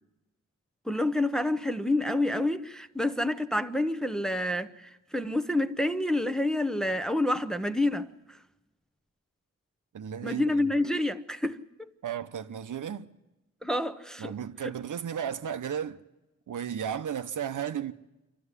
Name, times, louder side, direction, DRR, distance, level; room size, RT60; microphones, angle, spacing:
voice 1, 0.9-8.4 10.2-11.9 13.6-14.3 14.6-14.7, left 1 dB, ahead, 0.8 m, -28 dB
voice 2, 9.9-10.6 12.0-13.1 14.2-16.0 16.5-17.9, right 8 dB, 80° right, 0.9 m, -34 dB
26.5 x 12.5 x 9.8 m
wide cardioid pair, 100°, 30 cm